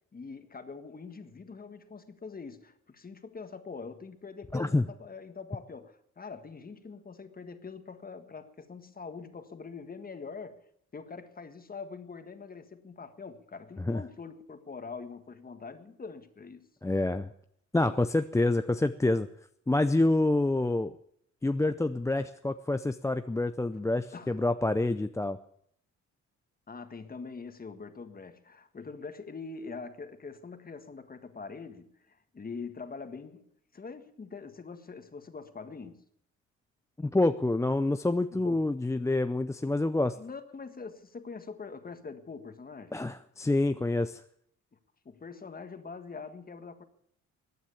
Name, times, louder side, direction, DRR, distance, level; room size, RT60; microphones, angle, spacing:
voice 1, 0.1-10.6 10.9-16.7 24.1-24.4 26.7-36.0 38.3-38.6 40.2-43.1 45.0-46.8, left 4 dB, 30° left, 9 dB, 1.7 m, -44 dB
voice 2, 4.5-4.8 13.8-14.0 16.8-17.3 17.7-19.3 19.7-20.9 21.4-25.4 37.0-40.2 42.9-44.2, left 2 dB, 10° left, 9 dB, 0.5 m, -27 dB
15.0 x 9.4 x 8.5 m, 0.68 s
cardioid pair, 90°, 30 cm